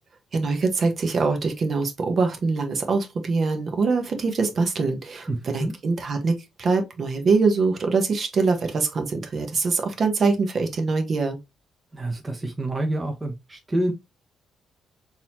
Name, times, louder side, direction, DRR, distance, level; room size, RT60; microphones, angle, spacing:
voice 1, 0.3-11.4, right 4 dB, 50° right, 1.0 m, -23 dB
voice 2, 5.3-5.7 11.9-13.9, right 1 dB, 20° right, 0.8 m, -27 dB
3.9 x 2.9 x 2.9 m
cardioid pair, 90°, 0 cm